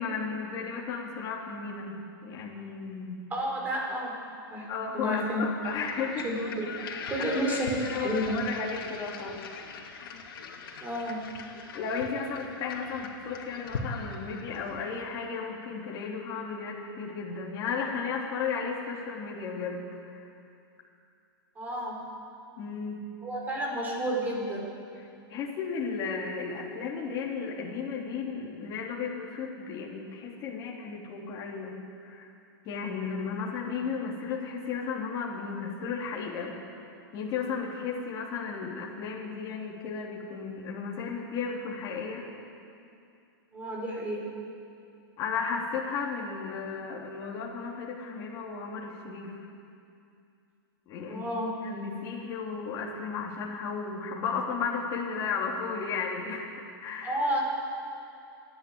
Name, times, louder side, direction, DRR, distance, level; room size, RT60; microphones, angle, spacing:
voice 1, 0.0-3.2 4.7-6.3 6.8-7.0 7.3-9.4 11.7-20.3 22.6-23.0 25.3-31.8 32.0-32.3 32.6-36.6 37.1-42.2 45.2-49.4 50.9-51.2 51.6-56.5 56.8-57.2, left 5 dB, 30° left, -3 dB, 3.2 m, -34 dB
voice 2, 3.3-4.1 4.5-4.7 4.9-5.5 6.2-6.7 7.1-8.4 10.8-11.2 21.6-22.0 23.2-24.6 43.5-44.3 51.1-51.5 57.0-57.4, right 1 dB, 15° right, -2 dB, 4.7 m, -31 dB
sound 1, 5.6-14.9, left 4 dB, 70° left, 2.8 m, -41 dB
29.0 x 11.0 x 8.7 m, 2.5 s
hypercardioid pair, 155°, 12 cm